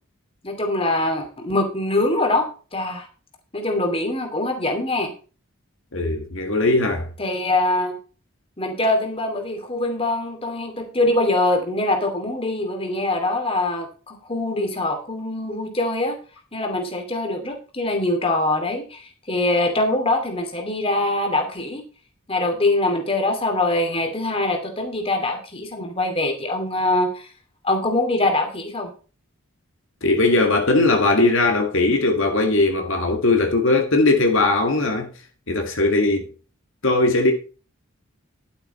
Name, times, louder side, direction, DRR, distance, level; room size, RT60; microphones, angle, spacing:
voice 1, 0.4-2.5 2.7-3.1 3.5-5.1 7.2-8.0 8.6-16.2 16.5-21.8 22.3-27.3 27.6-28.9, left 2 dB, 25° left, 2.6 m, -23 dB
voice 2, 5.9-7.1 30.0-35.1 35.5-36.3 36.8-37.3, left 2 dB, 65° left, 1.9 m, -19 dB
12.0 x 8.5 x 4.2 m
head